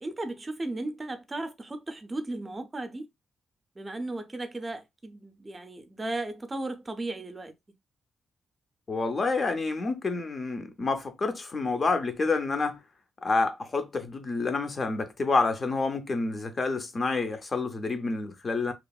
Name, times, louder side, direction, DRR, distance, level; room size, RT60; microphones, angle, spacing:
voice 1, 0.0-3.1 3.8-7.5, right 2 dB, 20° right, 0.5 m, -35 dB
voice 2, 8.9-12.8 13.2-18.7, left 3 dB, 35° left, 0.6 m, -28 dB
2.9 x 2.4 x 2.3 m
cardioid pair, 110°, 0 cm